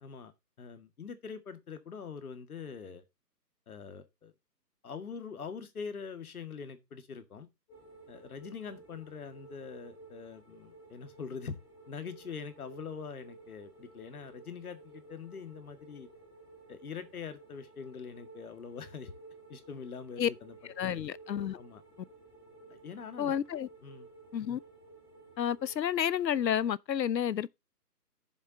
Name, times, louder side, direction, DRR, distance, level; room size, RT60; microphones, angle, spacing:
voice 1, 0.0-3.0 3.7-4.3 4.8-7.5 8.1-11.6 11.9-16.1 16.7-19.1 19.5-20.5 20.8-21.0 21.5-21.8 22.7-23.4 23.8-24.1, left 6 dB, 60° left, 2.0 m, -44 dB
sound 1, 7.7-26.6, right 2 dB, 5° left, 0.8 m, -54 dB
voice 2, 20.8-21.6 23.2-23.7 24.3-24.6 25.4-27.6, left 9 dB, 85° left, 0.8 m, -30 dB
14.5 x 7.3 x 2.8 m
hypercardioid pair, 165°, 50 cm